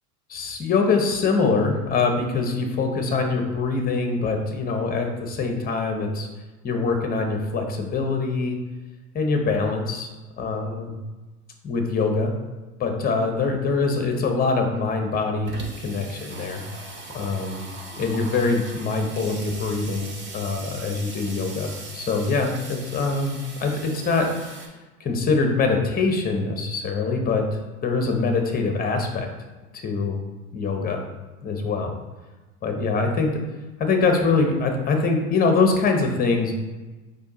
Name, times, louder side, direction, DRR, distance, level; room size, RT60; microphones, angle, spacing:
voice 1, 0.3-6.3 6.6-8.6 9.1-10.1 10.4-10.9 11.6-12.3 12.8-15.5 15.8-16.6 17.1-17.6 18.0-24.5 25.0-27.4 27.8-29.3 29.7-30.2 30.5-31.0 31.4-31.9 32.6-33.3 33.8-36.5, left 4 dB, 20° left, 4 dB, 0.7 m, -24 dB
Water tap faucet / Sink (filling or washing), 15.0-24.7, right 3 dB, 25° right, 0.7 m, -40 dB
4.5 x 2.7 x 4.0 m, 1.2 s
hypercardioid pair, 100°, 46 cm